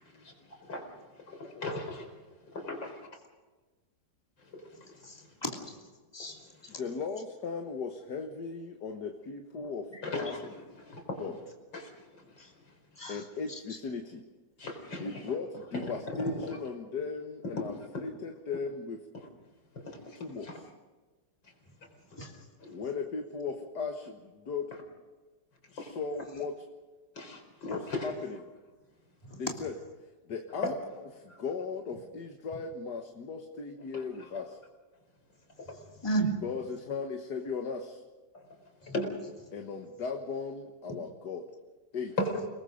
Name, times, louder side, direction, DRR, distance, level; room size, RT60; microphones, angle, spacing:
voice 1, 0.1-0.5 6.8-9.9 10.2-10.4 11.2-11.3 13.1-14.2 15.0-19.0 20.1-20.7 22.7-24.7 25.7-26.5 27.6-28.4 29.3-29.7 30.3-30.7 31.2-34.6 36.4-38.0 39.5-41.5 41.9-42.2, left 5 dB, 65° left, 4 dB, 2.0 m, -37 dB
voice 2, 2.5-3.0 10.0-10.6 10.8-11.2 11.7-11.9 14.6-15.1 15.7-15.8 16.4-16.6 19.9-20.6 22.6-22.7 25.8-25.9 27.2-28.1 30.6-30.7 31.3-31.4 38.3-38.4 38.9-39.1 42.2-42.3, left 2 dB, 85° left, 3 dB, 5.0 m, -36 dB
voice 3, 5.0-5.8 6.1-6.7 9.9-10.0 12.4-12.5 13.0-13.8 22.2-22.3 29.2-29.4 35.7-36.3 38.8-38.9, right 2 dB, 15° left, 0 dB, 3.0 m, -35 dB
30.0 x 20.0 x 5.3 m, 1.3 s
omnidirectional pair, 2.0 m